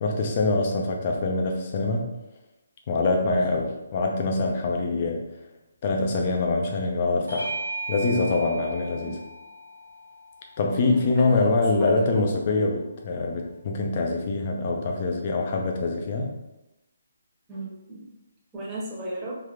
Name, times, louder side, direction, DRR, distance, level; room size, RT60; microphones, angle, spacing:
voice 1, 0.0-2.1 2.9-5.2 5.8-7.5 7.9-9.2 10.6-16.3, left 3 dB, 30° left, 1 dB, 0.6 m, -24 dB
Bell / Doorbell, 7.3-12.1, right 2 dB, 80° right, 0.9 m, -38 dB
voice 2, 10.8-12.2 17.5-18.1 18.5-19.3, right 1 dB, 15° right, -5 dB, 1.0 m, -35 dB
3.4 x 3.1 x 3.7 m, 0.95 s
figure-of-eight pair, 140°, 0 cm